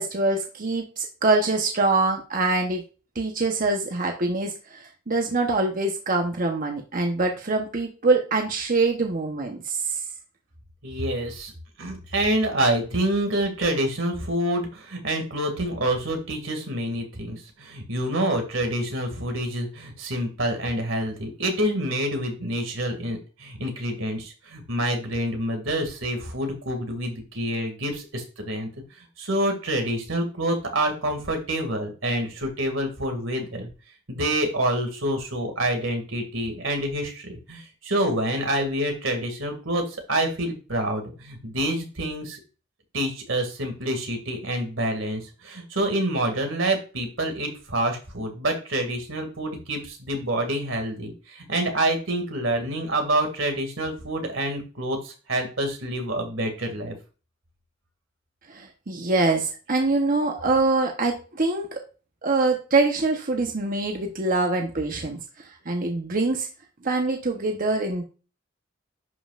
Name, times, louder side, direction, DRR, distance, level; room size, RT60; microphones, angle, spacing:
voice 1, 0.0-2.8 3.1-10.0 58.5-61.8 62.2-66.5 66.8-68.0, right 3 dB, 45° right, 3 dB, 1.0 m, -24 dB
voice 2, 10.8-11.5 11.8-28.7 29.0-33.7 34.1-42.4 42.9-57.0, right 1 dB, 85° right, 4 dB, 2.3 m, -27 dB
11.0 x 5.4 x 2.5 m, 0.34 s
head